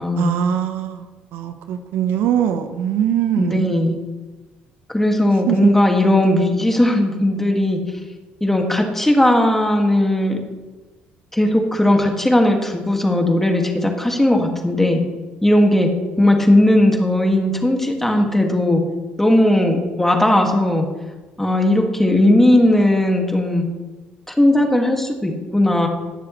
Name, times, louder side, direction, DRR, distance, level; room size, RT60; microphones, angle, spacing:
voice 1, 0.2-3.7 5.5-5.7 23.3-23.9, right 9 dB, 75° right, 8 dB, 0.9 m, -22 dB
voice 2, 3.4-4.0 4.9-7.8 8.4-10.4 11.3-15.0 15.4-15.9 16.2-18.8 19.2-20.9 21.4-23.7 24.4-25.9, left 1 dB, 10° left, 2 dB, 1.9 m, -17 dB
19.0 x 6.9 x 3.1 m, 1.2 s
supercardioid pair, 90°, 4 cm